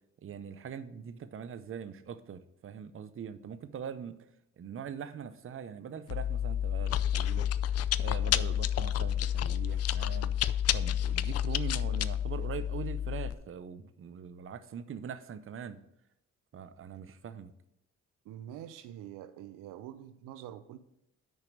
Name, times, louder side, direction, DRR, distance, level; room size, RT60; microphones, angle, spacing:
voice 1, 0.2-4.2 4.6-7.5 8.0-10.3 10.7-15.8 16.5-17.5, right 7 dB, 40° right, 12 dB, 0.7 m, -42 dB
Chewing mastication, 6.1-13.3, left 10 dB, 50° left, 0.4 m, -30 dB
voice 2, 18.2-20.8, right 11 dB, 85° right, 12 dB, 0.6 m, -45 dB
6.3 x 5.2 x 6.4 m, 0.84 s
cardioid pair, 75°, 31 cm